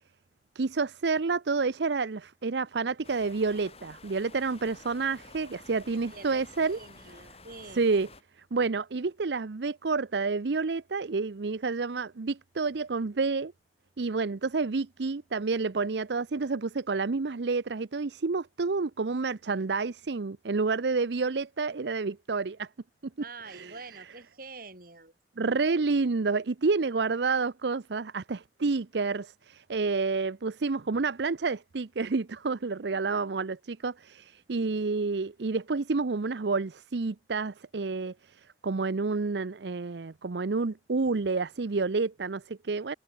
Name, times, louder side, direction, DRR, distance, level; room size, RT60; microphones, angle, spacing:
voice 1, 0.6-6.8 7.7-8.1 8.5-13.5 14.0-22.7 23.5-24.0 25.4-42.9, right 4 dB, 70° right, 0.6 m, -29 dB
sound 1, 3.0-8.2, left 3 dB, 35° left, 5.1 m, -51 dB
voice 2, 6.1-6.5 6.7-7.9 23.2-25.1, right 3 dB, 50° right, 7.4 m, -46 dB
head